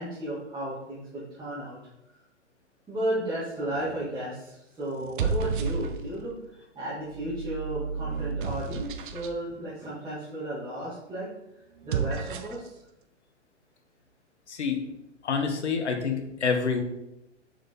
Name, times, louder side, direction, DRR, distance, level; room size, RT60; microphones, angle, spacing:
voice 1, 0.0-1.8 2.9-11.3 11.8-12.8, right 1 dB, 10° right, -12 dB, 2.7 m, -34 dB
sound 1, 3.7-4.1 4.9-6.3 7.0-9.4 11.7-12.7, right 5 dB, 45° right, 0.8 m, -32 dB
voice 2, 14.5-14.9 15.2-16.8, left 5 dB, 65° left, 4 dB, 1.5 m, -27 dB
6.9 x 5.9 x 3.9 m, 0.89 s
figure-of-eight pair, 120°, 36 cm